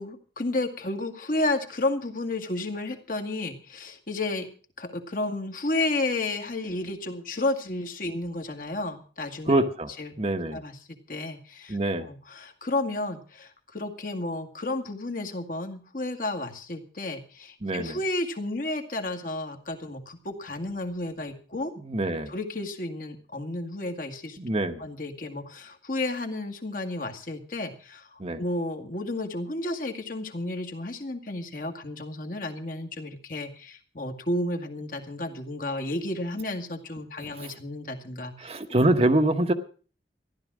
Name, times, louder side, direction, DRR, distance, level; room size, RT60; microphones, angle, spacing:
voice 1, 0.0-4.5 4.8-9.6 10.0-10.1 10.5-21.7 22.3-24.4 24.8-38.5, left 2 dB, 50° left, 5 dB, 1.9 m, -32 dB
voice 2, 9.5-9.9 10.2-10.6 11.7-12.1 17.6-18.0 21.8-22.3 24.4-24.8 28.2-28.4 37.4-37.5 38.4-39.5, right 1 dB, 35° right, 7 dB, 1.0 m, -25 dB
14.5 x 11.5 x 6.1 m, 0.40 s
head